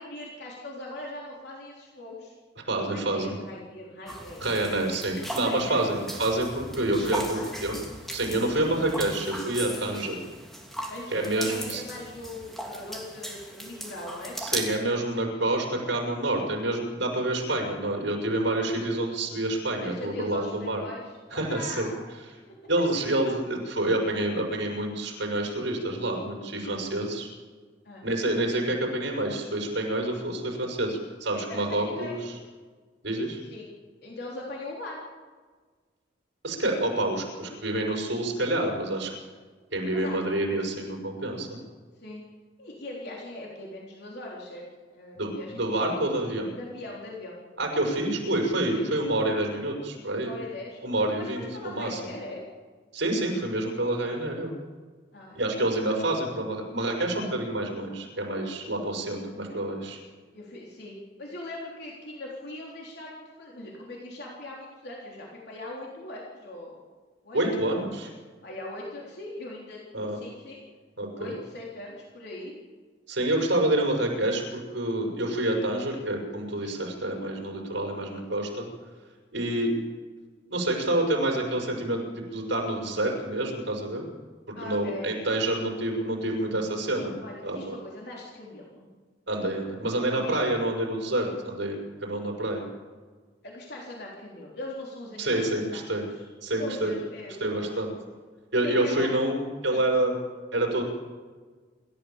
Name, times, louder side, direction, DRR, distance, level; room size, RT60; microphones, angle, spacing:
voice 1, 0.0-2.4 2.9-4.4 5.4-5.9 7.3-7.6 8.5-8.7 9.8-10.0 10.9-14.4 19.8-22.1 24.1-24.2 27.8-28.0 31.5-32.1 33.5-33.7 34.0-35.0 39.9-40.7 42.0-42.2 42.6-44.7 44.9-46.0 46.6-47.4 48.7-48.9 50.2-52.4 55.1-55.4 55.8-56.1 60.3-66.8 67.2-67.7 68.4-70.6 71.2-72.5 76.6-76.8 84.6-85.2 87.2-88.9 90.1-90.5 93.4-97.7 98.6-99.1 99.7-99.9, left 1 dB, 60° left, -3 dB, 3.7 m, -40 dB
voice 2, 2.7-3.3 4.4-7.8 8.1-10.2 11.1-11.8 14.4-20.8 21.3-21.9 22.7-27.3 28.0-32.2 33.0-33.4 36.4-39.1 39.7-41.6 45.2-46.5 47.6-50.3 50.8-52.0 52.9-54.5 55.3-60.0 67.3-68.1 69.9-70.2 71.0-71.3 73.1-78.7 79.3-79.7 80.5-84.0 84.5-87.1 87.4-87.7 89.3-92.7 95.2-96.1 96.4-96.9 97.4-97.9 98.5-100.1 100.5-100.8, right 1 dB, 80° right, 0 dB, 6.1 m, -28 dB
sound 1, 4.1-14.8, right 1 dB, ahead, 3.0 m, -38 dB
28.0 x 13.5 x 7.3 m, 1.5 s
head